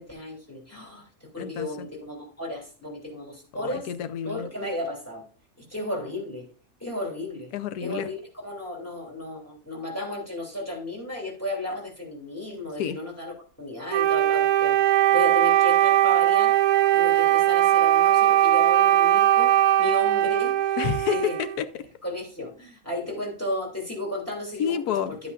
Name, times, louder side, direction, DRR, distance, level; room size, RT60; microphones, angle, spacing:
voice 1, 0.0-3.9 4.2-5.2 5.6-6.5 6.8-7.5 7.8-13.3 13.6-16.6 16.9-20.8 21.1-21.4 22.0-24.7 25.1-25.2, left 1 dB, 10° left, -1 dB, 2.8 m, -34 dB
voice 2, 1.4-1.9 3.6-4.5 7.5-8.1 12.8-13.0 20.8-21.8 24.6-25.2, left 8 dB, 90° left, 12 dB, 1.2 m, -29 dB
Wind instrument woodwind instrument, 13.9-21.6, right 13 dB, 80° right, 1.1 m, -20 dB
12.0 x 8.2 x 2.4 m, 0.38 s
omnidirectional pair, 1.6 m